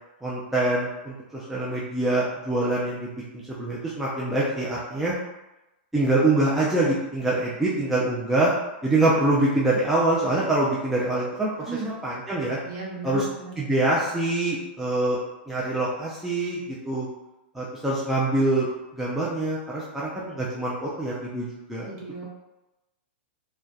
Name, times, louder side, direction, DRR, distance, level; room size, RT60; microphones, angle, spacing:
voice 1, 0.2-5.1 5.9-8.5 8.8-12.6 13.0-13.2 13.6-15.2 15.5-17.1 17.5-21.9, right 2 dB, 5° right, -7 dB, 0.3 m, -25 dB
voice 2, 11.6-11.9 12.6-13.8 21.8-22.2, right 3 dB, 40° right, -5 dB, 0.9 m, -36 dB
2.5 x 2.1 x 2.3 m, 0.97 s
hypercardioid pair, 135°, 6 cm